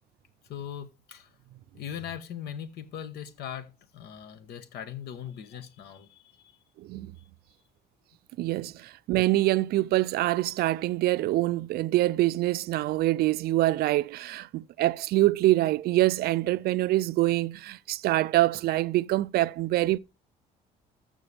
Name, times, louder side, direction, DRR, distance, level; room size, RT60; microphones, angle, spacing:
voice 1, 0.5-1.3 1.7-6.6 7.2-7.3, left 9 dB, 75° left, 1.2 m, -40 dB
voice 2, 6.8-7.1 8.4-20.0, right 16 dB, 65° right, 0.4 m, -25 dB
14.0 x 5.9 x 3.4 m
cardioid pair, 110°, 17 cm